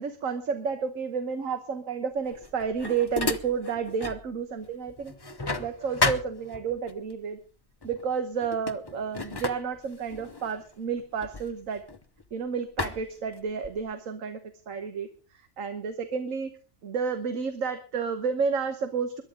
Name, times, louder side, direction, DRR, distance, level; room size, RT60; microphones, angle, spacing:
voice 1, 0.0-5.1 5.6-7.4 7.8-11.8 12.3-14.4 14.7-15.1 15.6-16.5 16.8-19.2, right 6 dB, 80° right, 8 dB, 1.6 m, -31 dB
sound 1, 2.2-4.3 4.6-6.9 7.8-8.1 8.4-12.3 12.8-13.9, left 2 dB, 20° left, 0.7 m, -33 dB
22.0 x 11.5 x 3.7 m, 0.36 s
omnidirectional pair, 1.4 m